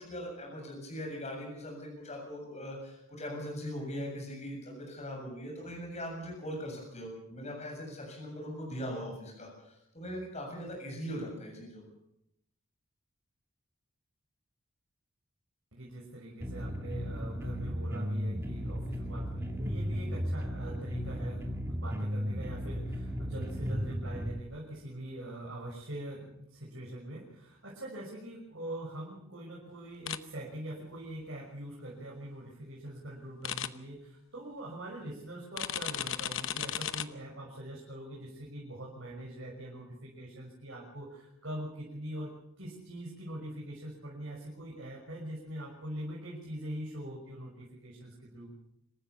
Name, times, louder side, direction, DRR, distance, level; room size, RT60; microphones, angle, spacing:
voice 1, 0.0-11.8, equal, 30° left, 0 dB, 7.6 m, -40 dB
voice 2, 15.7-42.3 42.6-48.5, right 1 dB, 60° right, -3 dB, 6.2 m, -43 dB
sound 1, 16.4-24.4, equal, 10° right, 2.1 m, -35 dB
sound 2, 30.1-30.2 33.4-33.7 35.6-37.0, left 10 dB, 60° left, 0.9 m, -34 dB
26.5 x 15.0 x 7.1 m, 0.80 s
head